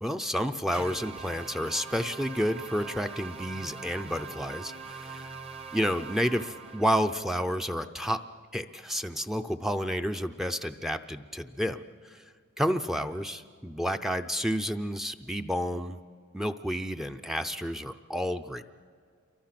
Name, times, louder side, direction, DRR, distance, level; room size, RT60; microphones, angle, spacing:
voice 1, 0.0-5.4 5.7-8.2 8.5-12.2 12.6-16.0 16.3-18.6, equal, ahead, 7 dB, 0.5 m, -30 dB
sound 1, 0.7-7.2, right 5 dB, 30° right, 1.0 m, -42 dB
28.0 x 24.0 x 5.9 m, 2.1 s
head